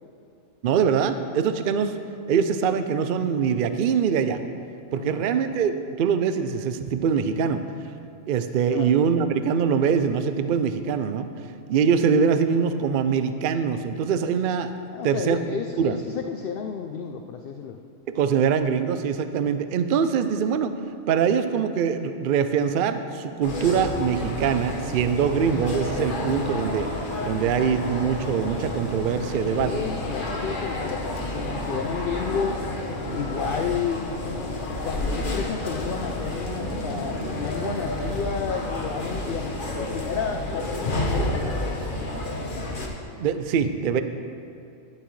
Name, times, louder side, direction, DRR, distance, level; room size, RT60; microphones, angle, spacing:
voice 1, 0.6-1.9 2.3-4.4 4.9-7.6 8.3-11.3 11.7-14.7 15.0-15.4 15.8-16.0 18.1-20.7 21.1-26.9 27.3-29.7 43.2-44.0, right 7 dB, 60° right, 9 dB, 0.6 m, -23 dB
voice 2, 4.9-5.2 8.7-8.9 14.9-17.8 29.6-32.7 33.1-34.1 34.8-41.6, left 6 dB, 60° left, 4 dB, 0.6 m, -31 dB
sound 1, 23.4-42.9, left 2 dB, 45° left, 1.2 m, -30 dB
sound 2, 30.8-38.0, right 1 dB, 30° right, 1.1 m, -43 dB
11.5 x 10.5 x 3.2 m, 2.6 s
omnidirectional pair, 1.3 m